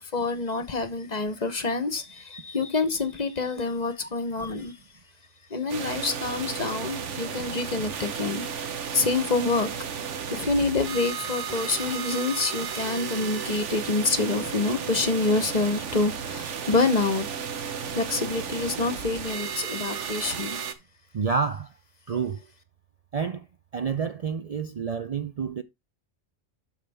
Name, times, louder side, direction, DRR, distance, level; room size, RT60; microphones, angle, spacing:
voice 1, 0.0-4.8 5.5-8.4 8.9-9.7 10.3-17.3 17.9-20.6, left 3 dB, 40° left, 0.9 m, -27 dB
sound 1, 5.7-20.7, right 7 dB, 90° right, 1.3 m, -33 dB
voice 2, 21.1-21.7 22.1-22.4 23.1-23.5 23.7-25.6, right 5 dB, 45° right, 0.5 m, -29 dB
12.0 x 4.8 x 3.4 m
omnidirectional pair, 1.2 m